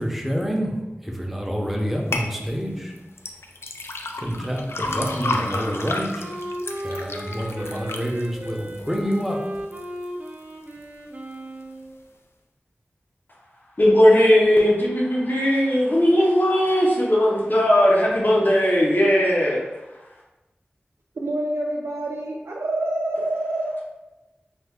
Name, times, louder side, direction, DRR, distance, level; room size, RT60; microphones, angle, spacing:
voice 1, 0.0-3.0 4.2-6.4 6.8-9.6, equal, 5° right, 0 dB, 0.6 m, -27 dB
sound 1, 2.1-2.3 3.2-9.3 9.8-10.3 10.8-10.9, left 2 dB, 75° left, 0.3 m, -31 dB
Wind instrument woodwind instrument, 4.8-11.9, right 1 dB, 40° right, 0.6 m, -36 dB
voice 2, 13.8-19.6, equal, 50° left, -4 dB, 0.7 m, -18 dB
voice 3, 21.2-23.8, right 1 dB, 90° right, -1 dB, 0.4 m, -27 dB
3.2 x 2.2 x 3.6 m, 1.0 s
wide cardioid pair, 60°, 4 cm